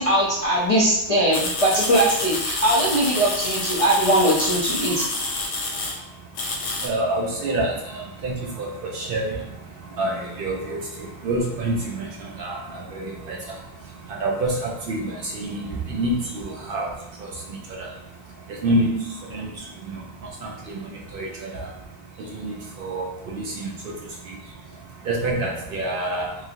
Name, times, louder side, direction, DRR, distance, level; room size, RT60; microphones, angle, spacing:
voice 1, 0.0-5.0, right 1 dB, 45° left, -7 dB, 0.5 m, -20 dB
sound 1, 1.3-6.0 6.3-6.9, left 2 dB, 90° left, 0.9 m, -28 dB
voice 2, 5.0-26.5, right 1 dB, 60° right, -2 dB, 0.7 m, -29 dB
3.0 x 2.6 x 2.4 m, 0.85 s
omnidirectional pair, 1.2 m